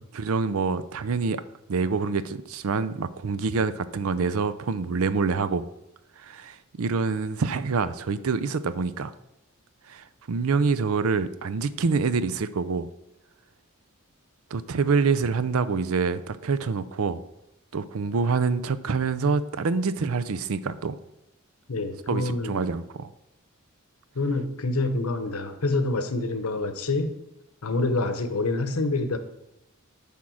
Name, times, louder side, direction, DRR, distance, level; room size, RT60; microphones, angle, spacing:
voice 1, 0.1-1.4 1.7-5.7 6.2-9.1 9.9-12.9 14.5-17.2 17.7-21.0 22.1-23.1, right 4 dB, 70° right, 14 dB, 0.5 m, -26 dB
voice 2, 21.7-22.7 24.1-27.2 27.6-29.2, left 2 dB, 75° left, 9 dB, 0.9 m, -27 dB
10.0 x 3.7 x 6.2 m, 0.87 s
head